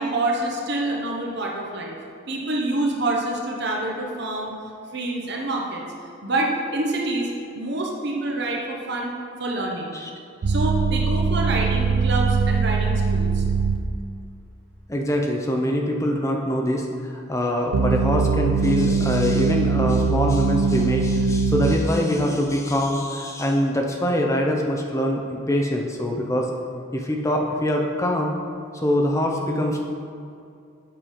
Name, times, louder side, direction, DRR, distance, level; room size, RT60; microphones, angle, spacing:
voice 1, 0.0-2.0 2.3-4.5 4.9-5.8 6.2-9.1 9.4-9.9 10.5-13.4, right 2 dB, 50° right, -1 dB, 0.9 m, -26 dB
sound 1, 10.4-13.8 17.7-21.8, right 4 dB, 90° right, 0.5 m, -21 dB
voice 2, 14.9-26.5 26.9-28.3 28.8-29.8, equal, 15° left, 1 dB, 0.6 m, -24 dB
7.6 x 5.7 x 5.0 m, 2.4 s
head